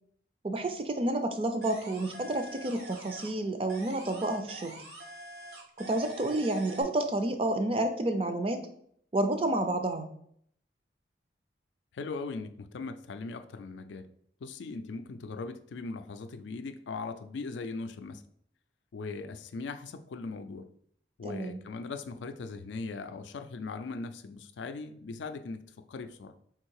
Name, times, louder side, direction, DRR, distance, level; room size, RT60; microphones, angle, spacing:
voice 1, 0.4-4.8 5.8-8.6 9.1-10.1 21.2-21.6, right 1 dB, 30° right, 7 dB, 0.4 m, -30 dB
sound 1, 1.6-3.4 3.7-6.8, right 1 dB, 65° right, 1.1 m, -46 dB
voice 2, 11.9-14.1 14.4-18.2 18.9-20.7 21.2-25.6 25.9-26.3, left 4 dB, 85° left, 9 dB, 0.4 m, -39 dB
3.6 x 2.7 x 4.6 m, 0.65 s
head